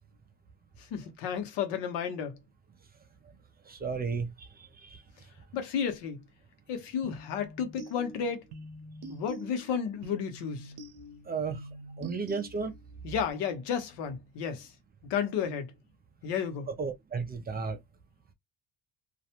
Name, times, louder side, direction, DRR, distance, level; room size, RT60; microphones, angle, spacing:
voice 1, 0.9-2.4 5.5-6.2 6.7-8.4 9.1-10.7 13.0-14.7 15.1-15.7 16.2-16.7, left 7 dB, 85° left, 0.9 m, -32 dB
voice 2, 3.7-5.0 11.3-11.6 12.0-12.7 16.8-17.8, right 5 dB, 25° right, 0.3 m, -34 dB
sound 1, 7.0-13.0, right 2 dB, 70° right, 0.7 m, -46 dB
2.4 x 2.1 x 2.8 m
cardioid pair, 140°, 41 cm